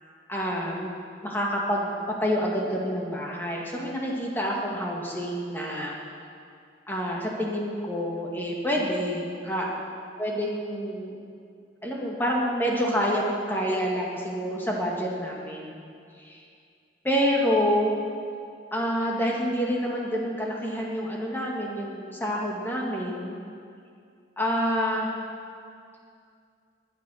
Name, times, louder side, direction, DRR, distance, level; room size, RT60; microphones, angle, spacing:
voice 1, 0.3-0.9 1.2-6.0 6.9-9.7 10.2-11.2 11.8-15.8 16.2-16.4 17.0-18.0 18.7-23.4 24.4-25.1, equal, 10° left, -2 dB, 2.0 m, -28 dB
21.5 x 9.5 x 6.4 m, 2.4 s
head